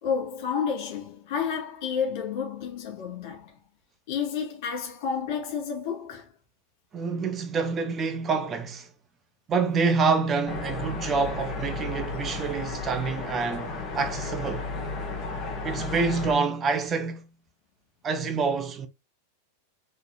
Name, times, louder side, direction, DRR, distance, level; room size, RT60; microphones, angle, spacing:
voice 1, 0.0-3.6 4.1-6.3, left 6 dB, 45° left, 1.8 m, -30 dB
voice 2, 6.9-8.9 9.5-14.7 15.6-17.3 18.0-18.9, right 4 dB, 25° right, 0.7 m, -27 dB
sound 1, 10.5-16.4, left 3 dB, 25° left, 1.6 m, -33 dB
4.0 x 3.2 x 3.0 m
figure-of-eight pair, 90°, 0 cm